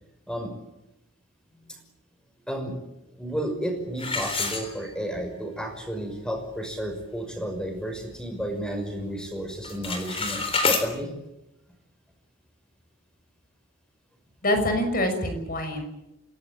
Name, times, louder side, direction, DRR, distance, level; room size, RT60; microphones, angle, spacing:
voice 1, 3.2-11.1, equal, 5° left, 5 dB, 5.8 m, -32 dB
sound 1, 4.0-5.3 5.7-5.8 6.4-6.5 6.9-7.2 7.6-8.7 9.0-9.3 9.6-10.9, left 4 dB, 30° left, 3.8 m, -28 dB
voice 2, 14.4-15.8, left 1 dB, 45° left, 6 dB, 6.2 m, -25 dB
27.0 x 17.5 x 8.9 m, 0.92 s
head